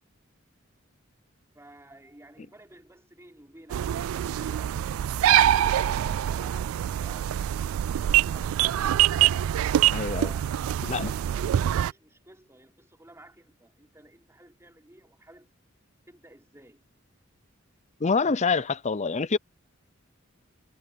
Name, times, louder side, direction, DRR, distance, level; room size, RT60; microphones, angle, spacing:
voice 1, 1.5-4.8 5.2-7.7 10.1-15.5 16.1-16.9 18.2-18.3, right 1 dB, 15° right, 5.6 m, -53 dB
sound 1, 3.7-11.9, right 11 dB, 85° right, 0.3 m, -24 dB
voice 2, 9.9-10.3 10.8-11.1 18.0-19.4, left 4 dB, 35° left, 0.6 m, -26 dB
head